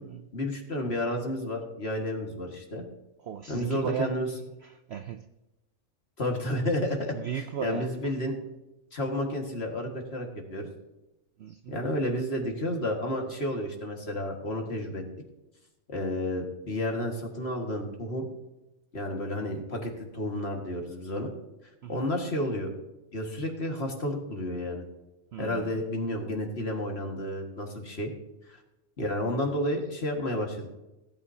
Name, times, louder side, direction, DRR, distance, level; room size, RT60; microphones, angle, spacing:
voice 1, 0.3-2.9 3.5-4.3 6.2-7.2 7.6-8.4 8.9-10.7 11.7-15.0 15.9-18.3 18.9-21.3 21.9-22.7 23.1-24.8 25.4-28.1 28.5-28.6 29.0-30.7, left 1 dB, 45° left, 2.0 m, -31 dB
voice 2, 3.2-4.2 4.6-5.3 7.1-8.1 11.4-11.8 21.8-22.1 25.3-25.8, right 8 dB, 65° right, 0.7 m, -36 dB
17.0 x 9.1 x 2.8 m
omnidirectional pair, 1.5 m